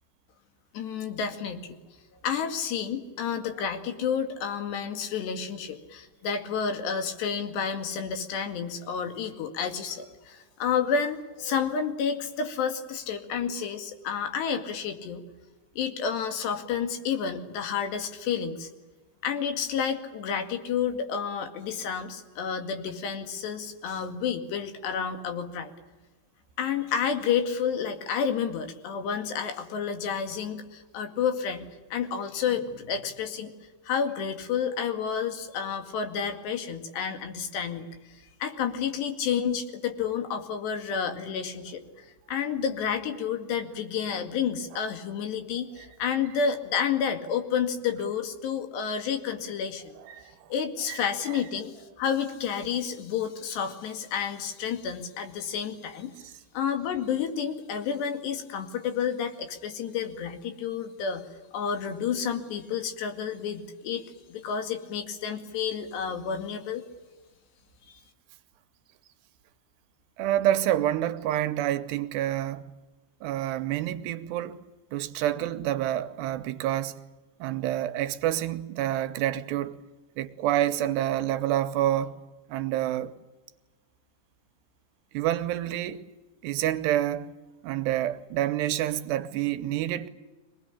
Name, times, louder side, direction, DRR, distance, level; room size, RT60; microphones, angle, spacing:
voice 1, 0.7-1.8 2.2-15.3 15.8-18.7 19.2-25.7 26.6-33.5 33.8-37.9 38.4-49.9 50.5-56.1 56.5-61.3 61.5-64.0 64.3-66.8 67.9-68.0, left 7 dB, 75° left, 4.3 m, -30 dB
voice 2, 70.2-72.7 73.2-74.6 74.9-77.0 77.4-79.8 80.2-82.2 82.5-83.1 85.1-86.0 86.4-87.3 87.6-90.1, right 12 dB, 80° right, 3.1 m, -28 dB
24.5 x 19.5 x 10.0 m
omnidirectional pair, 4.9 m